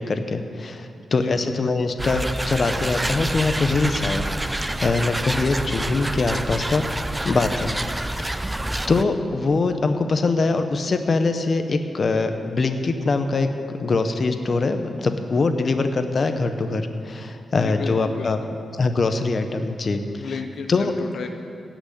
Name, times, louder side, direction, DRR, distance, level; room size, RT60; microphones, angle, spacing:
voice 1, 0.0-4.2 4.8-6.8 7.2-8.4 8.9-18.4 18.7-20.4 20.7-20.9, left 3 dB, 45° left, 7 dB, 0.9 m, -23 dB
sound 1, 2.0-9.0, right 1 dB, 10° right, 0.5 m, -27 dB
voice 2, 17.5-18.6 20.2-21.3, left 5 dB, 75° left, 5 dB, 0.7 m, -33 dB
16.5 x 6.1 x 8.3 m, 2.5 s
cardioid pair, 100°, 0 cm